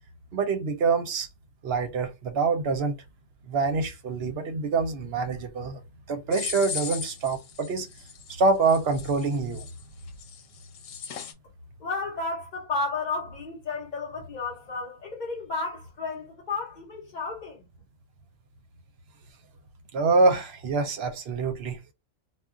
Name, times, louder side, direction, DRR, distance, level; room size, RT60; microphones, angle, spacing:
voice 1, 0.3-1.3 1.6-3.0 3.5-5.8 6.1-7.9 8.3-9.7 19.9-21.8, right 4 dB, 60° right, 0.8 m, -25 dB
sound 1, 6.3-11.3, left 7 dB, 85° left, 1.0 m, -38 dB
voice 2, 11.8-17.6, left 3 dB, 45° left, 0.7 m, -32 dB
2.3 x 2.2 x 3.6 m
omnidirectional pair, 1.3 m